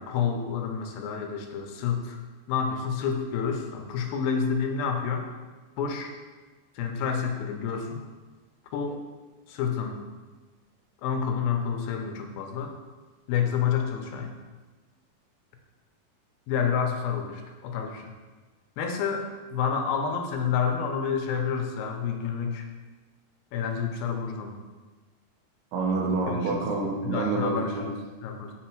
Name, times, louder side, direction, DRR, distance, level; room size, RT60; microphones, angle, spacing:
voice 1, 0.0-2.2 2.5-5.3 5.8-6.1 6.8-8.0 8.7-9.0 9.5-10.0 11.0-12.7 13.3-14.3 16.5-18.1 18.8-22.7 23.5-24.6 26.3-26.6 27.0-27.9 28.2-28.5, left 6 dB, 80° left, 4 dB, 2.5 m, -29 dB
voice 2, 25.7-27.9, right 3 dB, 90° right, 0 dB, 3.0 m, -27 dB
8.1 x 4.0 x 4.5 m, 1.3 s
omnidirectional pair, 4.3 m